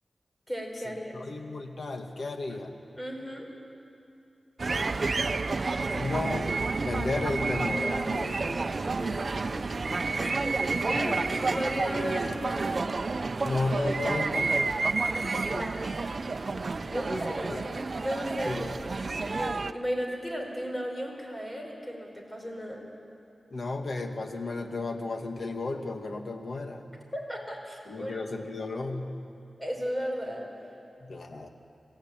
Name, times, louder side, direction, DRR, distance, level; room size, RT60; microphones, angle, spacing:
voice 1, 0.5-1.2 2.5-2.6 3.0-3.5 9.0-9.6 10.2-12.8 15.2-15.9 16.5-22.9 27.1-28.2 29.6-30.5, equal, 20° left, 1 dB, 4.9 m, -35 dB
voice 2, 1.1-2.7 5.9-6.5 6.9-8.6 10.9-11.2 13.4-14.8 15.5-15.7 18.5-18.6 23.5-26.8 27.9-29.2 31.0-31.5, left 2 dB, 60° left, 4 dB, 2.0 m, -33 dB
sound 1, 4.6-19.7, right 3 dB, 50° right, 0.7 m, -30 dB
26.5 x 16.0 x 9.1 m, 2.7 s
wide cardioid pair, 85°, 0 cm